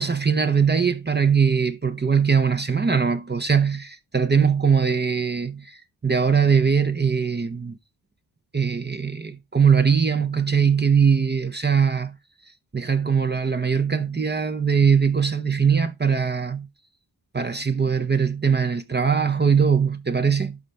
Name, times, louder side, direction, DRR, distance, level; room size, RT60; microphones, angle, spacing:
voice 1, 0.0-7.8 8.5-12.1 12.7-16.7 17.3-20.6, right 6 dB, 25° right, 0.7 m, -21 dB
11.5 x 4.1 x 3.4 m
cardioid pair, 55°, 43 cm